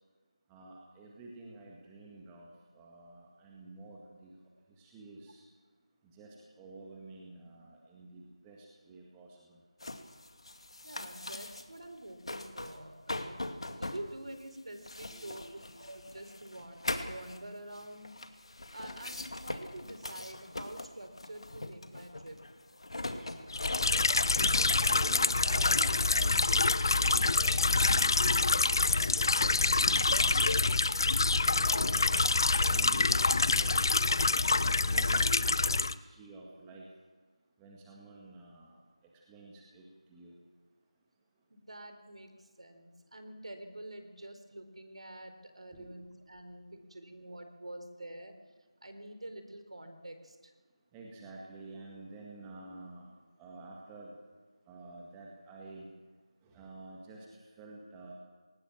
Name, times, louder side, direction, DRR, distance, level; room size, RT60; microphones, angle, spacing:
voice 1, 0.5-2.5 2.7-4.3 4.7-5.4 6.1-9.6 15.1-15.4 19.9-20.3 24.4-30.8 31.4-32.1 32.6-33.8 34.6-36.9 37.6-38.8 39.3-40.3 45.7-46.0 50.9-53.1 53.4-54.1 54.7-55.8 56.4-58.1, right 2 dB, 10° right, -2 dB, 1.8 m, -50 dB
sound 1, 9.8-11.9 12.1-12.8 13.1-26.5, left 2 dB, 55° left, 2.2 m, -41 dB
voice 2, 10.8-18.1 18.7-22.4 41.5-48.3 48.8-50.5, right 1 dB, 60° right, 8 dB, 4.2 m, -47 dB
sound 2, 23.5-35.9, left 3 dB, 40° left, 0.7 m, -26 dB
21.0 x 19.0 x 7.4 m, 1.4 s
figure-of-eight pair, 170°, 4 cm